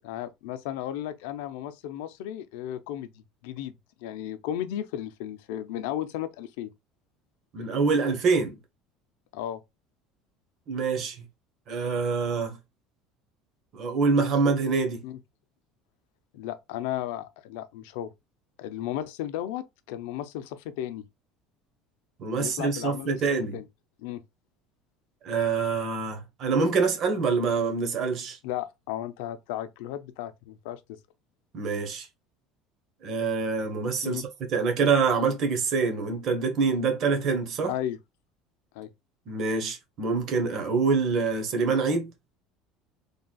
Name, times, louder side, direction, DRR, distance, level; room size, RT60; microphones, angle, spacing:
voice 1, 0.0-6.7 9.3-9.6 15.0-15.2 16.3-18.1 18.6-21.0 22.3-23.2 23.5-23.7 24.0-24.2 28.4-31.0 34.0-34.2 37.6-38.0 38.7-38.9, left 12 dB, 90° left, 0.5 m, -34 dB
voice 2, 7.5-8.5 10.7-11.2 11.7-12.6 13.7-15.0 22.2-23.6 25.2-28.4 31.5-32.1 33.0-37.7 39.3-42.1, right 4 dB, 40° right, 1.1 m, -25 dB
4.1 x 3.4 x 2.2 m
cardioid pair, 165°, 0 cm